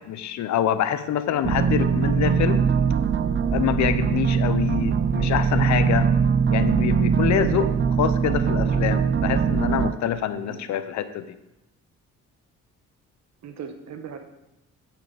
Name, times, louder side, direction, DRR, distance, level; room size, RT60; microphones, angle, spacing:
voice 1, 0.0-2.6 3.5-6.1 6.5-11.3, left 10 dB, 65° left, 11 dB, 0.7 m, -26 dB
sound 1, 1.4-9.9, right 6 dB, 40° right, 0.5 m, -21 dB
voice 2, 13.4-14.2, right 7 dB, 65° right, 7 dB, 1.2 m, -39 dB
8.4 x 7.7 x 4.0 m, 0.91 s
cardioid pair, 90°, 30 cm